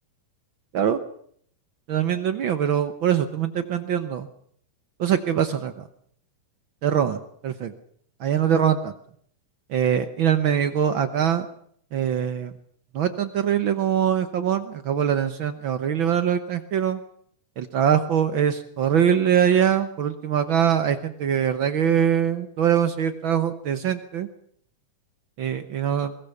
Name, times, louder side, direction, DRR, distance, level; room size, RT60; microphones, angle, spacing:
voice 1, 1.9-4.3 5.0-5.8 6.8-7.7 8.2-8.9 9.7-11.4 11.9-12.5 12.9-17.0 17.6-24.3 25.4-26.2, right 9 dB, 80° right, 10 dB, 1.1 m, -23 dB
22.0 x 18.5 x 7.1 m, 0.64 s
omnidirectional pair, 3.8 m